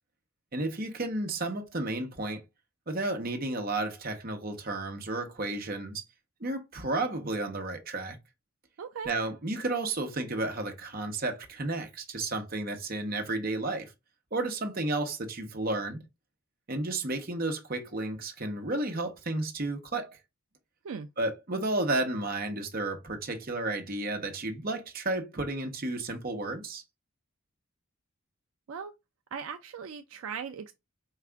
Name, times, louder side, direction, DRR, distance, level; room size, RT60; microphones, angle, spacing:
voice 1, 0.5-2.4 2.9-6.0 6.4-8.2 9.1-13.9 14.3-16.0 16.7-20.2 21.2-26.8, right 2 dB, 45° right, 0.9 m, -32 dB
voice 2, 8.8-9.1 20.8-21.1 28.7-28.9 29.3-30.7, right 6 dB, 75° right, 0.4 m, -38 dB
4.7 x 2.4 x 3.3 m
head